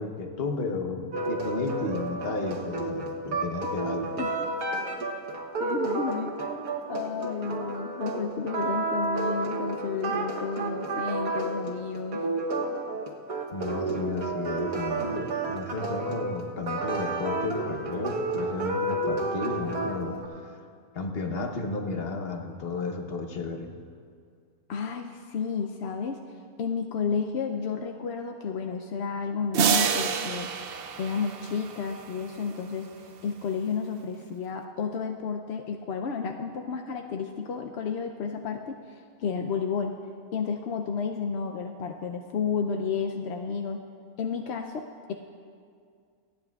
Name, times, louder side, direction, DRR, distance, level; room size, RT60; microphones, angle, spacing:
voice 1, 0.0-4.1 13.5-20.2 20.4-20.6 20.9-23.7, left 3 dB, 45° left, 3 dB, 1.0 m, -33 dB
sound 1, 1.1-20.3, right 2 dB, 80° right, 1.5 m, -31 dB
voice 2, 5.6-6.3 6.9-12.2 24.7-26.2 26.6-30.5 31.0-39.9 40.3-43.8 44.2-45.1, left 6 dB, 65° left, 3 dB, 0.7 m, -32 dB
sound 2, 29.5-32.0, right 6 dB, 60° right, 0.6 m, -27 dB
28.0 x 9.3 x 2.3 m, 2.2 s
omnidirectional pair, 1.6 m